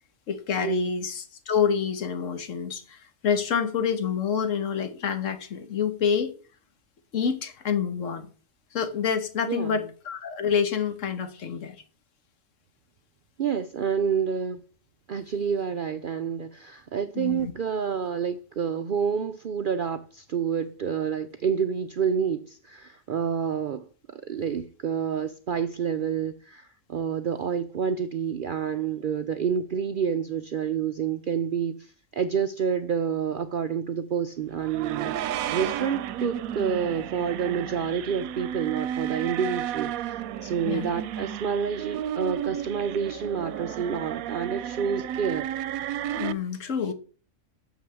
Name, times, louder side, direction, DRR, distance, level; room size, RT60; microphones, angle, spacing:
voice 1, 0.3-6.3 7.1-8.3 8.7-11.8 17.1-17.5 40.7-41.0 46.2-46.9, left 7 dB, 65° left, 1.4 m, -27 dB
voice 2, 9.5-9.8 13.4-14.6 15.1-45.5, right 7 dB, 60° right, 0.5 m, -28 dB
sound 1, 34.6-46.3, right 10 dB, 90° right, 1.0 m, -33 dB
6.5 x 6.1 x 6.9 m
omnidirectional pair, 1.4 m